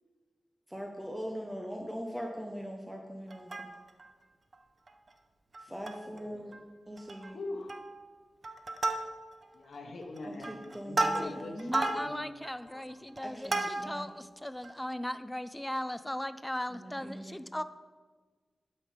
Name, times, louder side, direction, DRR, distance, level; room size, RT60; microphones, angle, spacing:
voice 1, 0.7-3.5 5.6-6.6 6.9-7.4 10.2-11.8 13.2-14.1 16.7-17.4, equal, 5° right, 1 dB, 0.9 m, -41 dB
Plucked string instrument, 3.3-4.1 4.5-4.6 4.9-5.1 5.5-6.2 6.5-6.6 7.0-7.3 7.7-8.1 8.4-9.5 10.0-14.1 14.6-14.7, right 2 dB, 45° right, 0.9 m, -34 dB
voice 2, 7.2-7.7 9.5-12.3 12.6-12.8, left 2 dB, 75° left, 2 dB, 1.1 m, -42 dB
voice 3, 11.7-17.6, left 1 dB, 10° left, 13 dB, 0.5 m, -38 dB
11.5 x 5.6 x 5.0 m, 1.4 s
wide cardioid pair, 85°, 0 cm